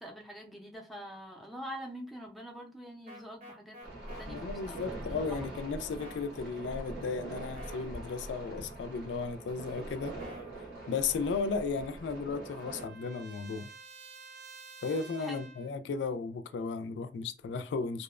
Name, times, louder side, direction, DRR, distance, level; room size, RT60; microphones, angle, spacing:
voice 1, 0.0-3.8 4.2-5.0 5.9-6.1 14.9-15.4, equal, ahead, 0.4 m, -45 dB
sound 1, 3.1-4.3 6.0-6.3 7.6-7.9 10.2-10.5, left 1 dB, 40° right, 0.7 m, -49 dB
sound 2, 3.8-12.9, right 2 dB, 90° right, 1.1 m, -43 dB
voice 2, 4.3-10.1 10.9-13.7 14.8-18.0, left 4 dB, 85° left, 0.3 m, -35 dB
Trumpet, 11.5-15.8, right 5 dB, 75° right, 0.3 m, -52 dB
2.7 x 2.0 x 2.4 m
head